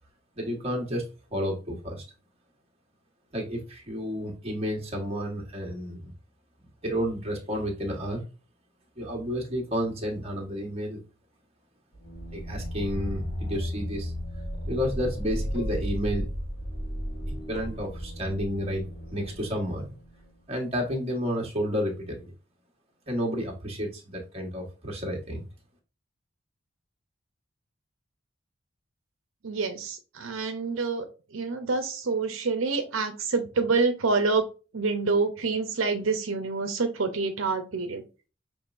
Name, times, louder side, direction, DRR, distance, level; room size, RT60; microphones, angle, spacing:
voice 1, 0.4-1.0 1.3-2.0 3.3-6.1 6.8-8.2 9.0-11.0 12.3-14.1 14.7-16.3 17.3-18.9 19.1-19.9 20.5-22.3 23.1-25.4, equal, 30° right, 0 dB, 1.4 m, -31 dB
sound 1, 11.9-20.5, equal, 50° left, 1.6 m, -34 dB
voice 2, 29.4-31.1 31.3-34.4 34.7-38.0, right 4 dB, 75° right, 6 dB, 0.7 m, -27 dB
6.3 x 3.1 x 2.5 m, 0.33 s
head